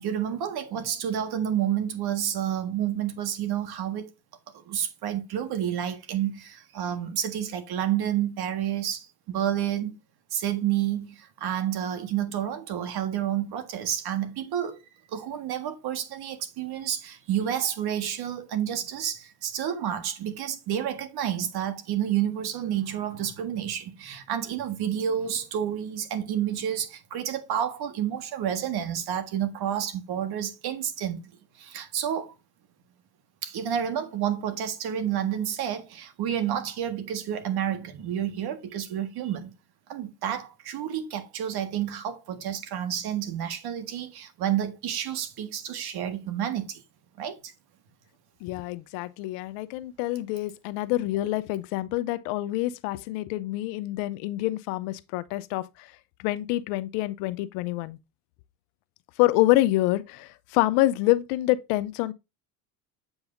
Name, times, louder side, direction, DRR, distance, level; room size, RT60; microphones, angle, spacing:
voice 1, 0.0-4.1 4.5-9.9 10.3-14.8 15.1-31.2 31.6-32.3 33.4-39.5 39.9-46.8 47.2-47.5, right 10 dB, 55° right, 1.6 m, -30 dB
voice 2, 48.4-55.9 56.2-58.0 59.2-62.1, left 17 dB, 75° left, 0.8 m, -26 dB
8.0 x 5.5 x 2.6 m
supercardioid pair, 105°, 46 cm